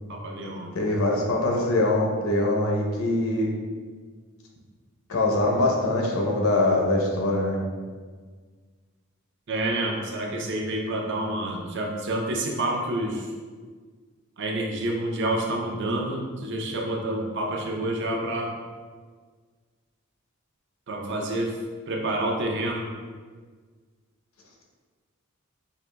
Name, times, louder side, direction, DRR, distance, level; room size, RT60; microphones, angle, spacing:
voice 1, 0.1-0.8 9.5-13.3 14.4-18.5 20.9-21.6 21.9-22.9, right 1 dB, 55° right, 0 dB, 0.5 m, -28 dB
voice 2, 0.7-3.5 5.1-7.6, left 2 dB, 75° left, 0 dB, 0.7 m, -23 dB
4.8 x 2.9 x 2.2 m, 1.5 s
head